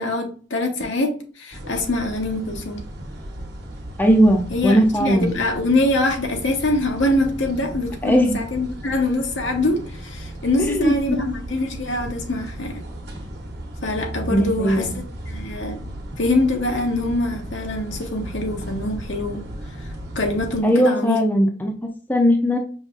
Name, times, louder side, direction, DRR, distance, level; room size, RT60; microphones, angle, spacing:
voice 1, 0.0-2.8 4.5-12.8 13.8-19.5 20.1-21.2, left 2 dB, 80° left, 0.9 m, -24 dB
sound 1, 1.5-20.6, equal, 55° right, 1.0 m, -35 dB
voice 2, 4.0-5.3 8.0-8.3 10.6-10.9 14.3-14.9 20.6-22.6, equal, 10° left, 0.5 m, -18 dB
5.2 x 2.9 x 2.4 m
head